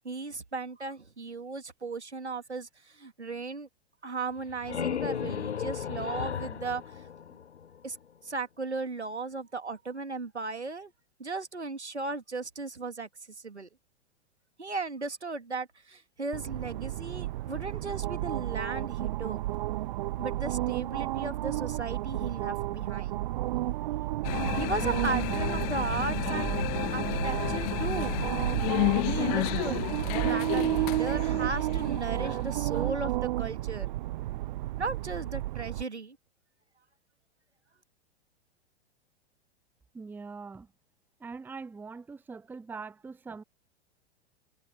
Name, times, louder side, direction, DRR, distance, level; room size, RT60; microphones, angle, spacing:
voice 1, 0.0-3.7 4.0-7.1 7.8-8.0 8.2-10.9 11.2-13.1 13.4-13.7 14.6-19.4 20.2-23.2 24.6-28.2 29.0-33.9 34.8-36.2, right 3 dB, 85° right, 2.0 m, -36 dB
sound 1, 4.3-8.0, left 8 dB, 85° left, 0.5 m, -35 dB
sound 2, 16.3-35.8, right 16 dB, 45° right, 0.5 m, -32 dB
sound 3, 24.2-32.9, left 33 dB, 35° left, 0.8 m, -32 dB
voice 2, 39.9-40.7 41.2-43.4, right 4 dB, 5° right, 0.7 m, -42 dB
figure-of-eight pair, 100°, 33 cm